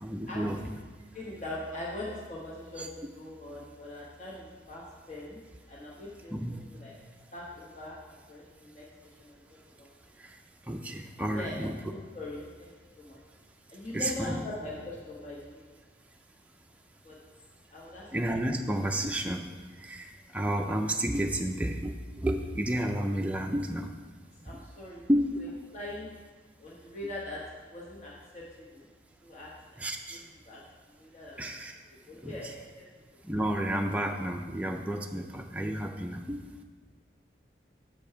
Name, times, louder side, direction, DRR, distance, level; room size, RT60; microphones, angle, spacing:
voice 1, 0.0-0.7 2.8-2.9 6.3-6.6 10.2-10.4 10.7-11.8 13.9-14.4 18.1-19.5 19.8-21.9 22.2-23.9 25.1-25.4 29.8-30.2 31.4-31.8 32.2-32.5 33.2-36.4, right 1 dB, 10° right, 2 dB, 0.4 m, -31 dB
voice 2, 1.1-2.9 3.1-5.4 5.7-6.4 6.7-6.9 7.3-8.8 9.2-9.4 9.8-9.9 11.3-12.7 13.0-13.2 13.7-15.7 17.0-17.2 17.7-18.1 23.0-23.1 24.4-25.0 25.4-26.1 26.6-27.4 27.7-28.4 28.7-28.9 29.2-29.8 30.5-30.6 30.9-31.5 32.1-32.8, left 2 dB, 40° left, -5 dB, 1.1 m, -41 dB
6.9 x 5.2 x 5.6 m, 1.4 s
head